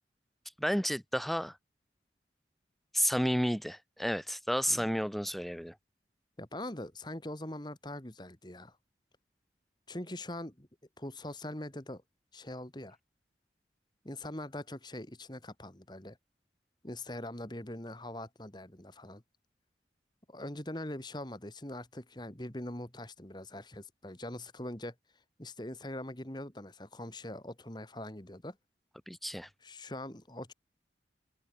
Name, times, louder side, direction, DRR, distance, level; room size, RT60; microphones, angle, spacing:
voice 1, 0.6-1.6 2.9-5.7 29.1-29.5, equal, ahead, 0.6 m, -31 dB
voice 2, 6.4-8.8 9.9-10.7 11.0-12.0 12.3-13.0 14.0-16.2 16.8-19.2 20.3-24.9 25.4-28.6 29.6-30.5, left 1 dB, 25° left, 2.1 m, -42 dB
head